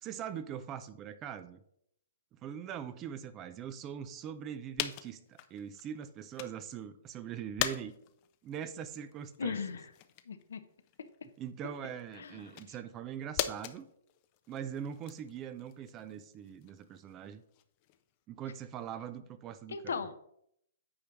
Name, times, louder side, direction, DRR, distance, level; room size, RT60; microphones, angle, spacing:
voice 1, 0.0-1.6 2.3-7.9 8.4-9.6 11.4-13.9 14.5-17.4 18.3-20.0, right 8 dB, 25° right, 12 dB, 0.6 m, -42 dB
sound 1, 4.8-6.7 7.1-18.2, left 12 dB, 35° left, 0.6 m, -42 dB
voice 2, 9.4-9.9 10.3-10.6 12.1-12.5 19.7-20.2, left 5 dB, 70° left, 10 dB, 0.8 m, -37 dB
8.7 x 4.5 x 5.3 m, 0.72 s
hypercardioid pair, 130°, 0 cm